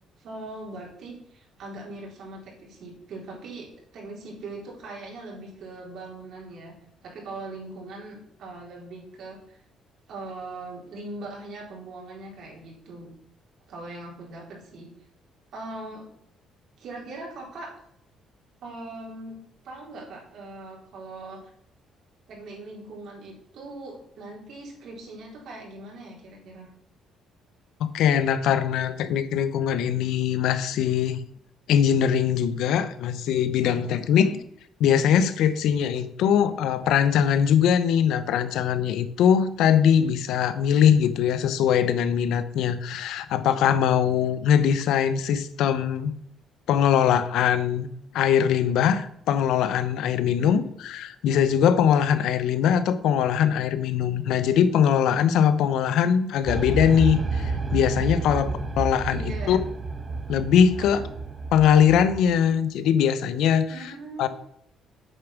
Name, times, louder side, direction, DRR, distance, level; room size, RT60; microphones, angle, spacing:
voice 1, 0.2-3.7 3.9-6.7 7.0-9.6 10.1-13.1 13.7-14.9 15.5-16.0 16.8-17.7 18.6-19.4 19.6-21.4 22.3-26.7 34.0-34.3 50.4-50.6 58.3-58.8 59.1-59.6 60.8-61.0 63.7-64.3, right 2 dB, 60° right, -2 dB, 4.2 m, -40 dB
voice 2, 27.8-31.2 31.7-34.3 34.8-46.1 46.7-47.9 48.1-58.5 58.8-59.2 59.5-59.6 60.3-61.0 61.5-63.9 64.2-64.3, left 8 dB, 80° left, 13 dB, 0.8 m, -21 dB
sound 1, 56.4-62.2, right 3 dB, 20° right, 1.4 m, -30 dB
8.6 x 7.1 x 6.0 m, 0.72 s
cardioid pair, 135°, 0 cm